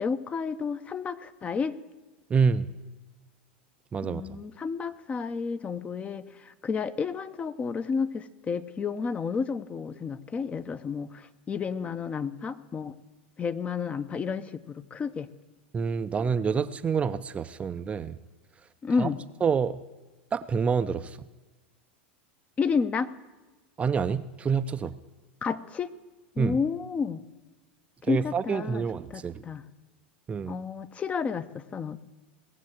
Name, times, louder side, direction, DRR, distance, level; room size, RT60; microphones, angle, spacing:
voice 1, 0.0-1.8 4.0-13.0 13.4-15.3 18.8-19.2 22.6-23.1 25.4-25.9 26.4-27.2 28.0-28.8 29.1-29.6 30.5-32.0, left 5 dB, 25° left, 12 dB, 0.8 m, -31 dB
voice 2, 2.3-2.7 3.9-4.4 15.7-18.2 19.0-19.1 19.4-19.8 20.3-21.2 23.8-24.9 26.4-26.6 28.1-29.4 30.3-30.6, right 6 dB, 20° right, 11 dB, 0.5 m, -27 dB
18.5 x 7.4 x 7.9 m, 1.2 s
figure-of-eight pair, 85°, 6 cm